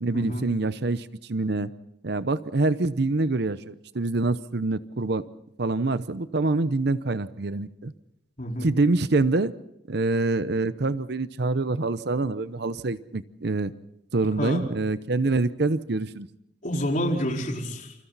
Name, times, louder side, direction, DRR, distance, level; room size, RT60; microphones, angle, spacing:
voice 1, 0.0-1.7 2.0-5.2 5.6-7.9 8.6-9.5 9.9-13.7 14.1-16.3, right 2 dB, 60° right, 14 dB, 0.8 m, -25 dB
voice 2, 8.4-8.7 14.4-14.6 16.6-17.9, equal, 45° left, 0 dB, 4.5 m, -28 dB
28.0 x 27.0 x 4.1 m, 0.82 s
head